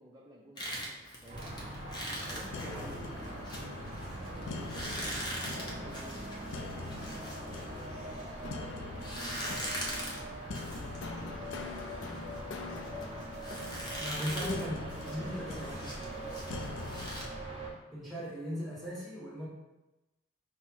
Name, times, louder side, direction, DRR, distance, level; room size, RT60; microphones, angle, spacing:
voice 1, 0.0-1.9 2.3-4.0 4.5-6.3 6.7-10.5 11.0-12.5 14.1-16.7, equal, 15° right, -4 dB, 0.4 m, -53 dB
sound 1, 0.6-8.5 9.0-17.2, equal, 20° left, 0.7 m, -42 dB
sound 2, 1.3-17.7, right 1 dB, 30° right, 1.0 m, -42 dB
sound 3, 2.5-17.3, left 3 dB, 75° left, 0.4 m, -45 dB
voice 2, 2.6-3.2 14.0-14.8 15.1-15.7 17.9-19.5, equal, ahead, -9 dB, 1.3 m, -38 dB
5.3 x 2.1 x 4.4 m, 1.0 s
head